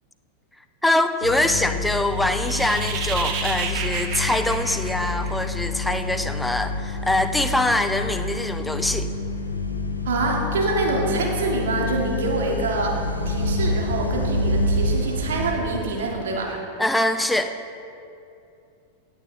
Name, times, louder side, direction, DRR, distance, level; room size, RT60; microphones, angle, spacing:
voice 1, 0.8-9.1 16.8-17.5, left 1 dB, 5° left, 8 dB, 0.6 m, -23 dB
sound 1, 1.2-15.5, left 2 dB, 85° left, 0.8 m, -27 dB
sound 2, 2.1-5.7, right 6 dB, 45° right, 1.1 m, -31 dB
voice 2, 10.0-13.0 13.3-16.6, right 3 dB, 60° right, 0 dB, 1.8 m, -25 dB
16.0 x 8.7 x 3.3 m, 2.6 s
figure-of-eight pair, 90°, 0 cm